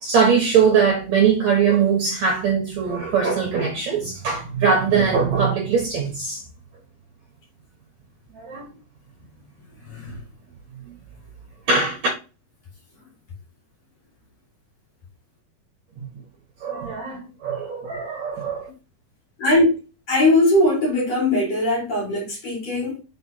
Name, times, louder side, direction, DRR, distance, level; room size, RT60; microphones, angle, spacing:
voice 1, 0.0-6.4 8.3-8.8 10.1-10.2 10.9-11.0 11.7-12.0 16.0-16.1 16.6-18.7, right 6 dB, 65° right, 1.9 m, -21 dB
voice 2, 9.8-10.2 19.4-19.8 20.1-23.0, left 1 dB, 50° left, 2.5 m, -20 dB
6.0 x 4.4 x 4.1 m
omnidirectional pair, 4.6 m